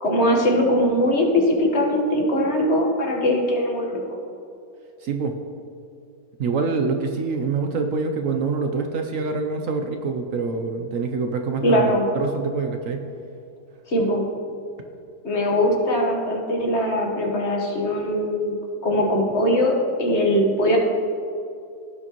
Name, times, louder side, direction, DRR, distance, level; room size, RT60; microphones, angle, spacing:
voice 1, 0.0-4.0 11.6-12.1 13.9-14.2 15.2-18.6 18.8-20.8, equal, 45° left, 0 dB, 1.6 m, -21 dB
voice 2, 5.0-5.4 6.4-13.0, right 4 dB, 65° right, 5 dB, 1.0 m, -25 dB
17.0 x 6.5 x 3.0 m, 2.6 s
omnidirectional pair, 1.6 m